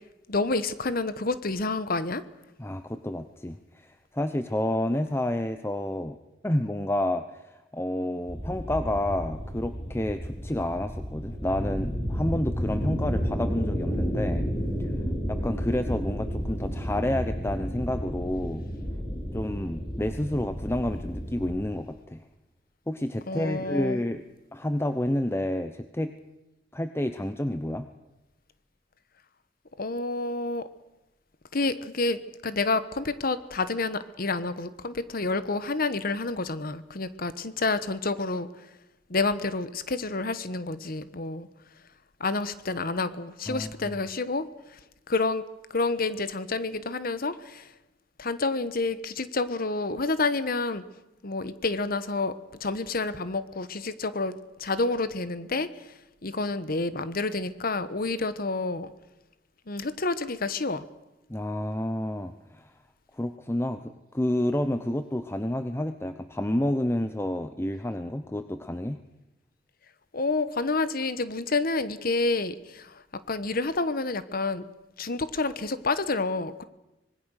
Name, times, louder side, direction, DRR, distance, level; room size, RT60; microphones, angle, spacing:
voice 1, 0.3-2.2 23.3-24.0 29.8-30.7 31.5-38.5 39.1-41.5 42.2-44.8 45.1-45.4 45.7-47.7 48.2-50.8 51.2-52.3 52.6-55.9 56.2-58.9 59.7-60.8 70.1-74.6 75.0-76.6, left 3 dB, 50° left, 13 dB, 1.2 m, -29 dB
voice 2, 2.6-6.2 6.4-14.5 15.3-18.6 19.3-22.2 22.9-24.2 24.5-26.1 26.7-27.9 43.5-44.0 61.3-62.7 63.2-69.0, left 1 dB, 15° left, 9 dB, 0.8 m, -29 dB
sound 1, 8.3-21.5, equal, 30° left, 5.5 m, -31 dB
25.0 x 20.5 x 6.5 m, 0.98 s
head